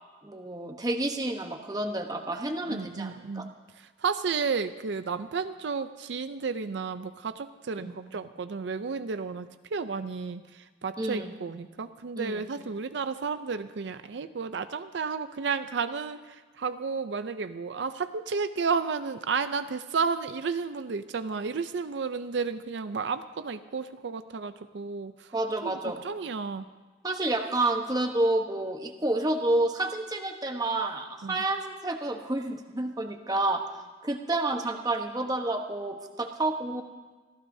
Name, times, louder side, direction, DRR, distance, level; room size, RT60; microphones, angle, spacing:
voice 1, 0.2-3.5 7.7-8.0 11.0-11.3 12.2-12.5 25.3-26.0 27.0-33.6 34.0-36.8, right 2 dB, 20° right, 4 dB, 1.0 m, -29 dB
voice 2, 2.7-25.3 25.6-26.7 31.2-31.4, right 5 dB, 75° right, 10 dB, 0.5 m, -32 dB
25.5 x 15.0 x 2.7 m, 1.3 s
head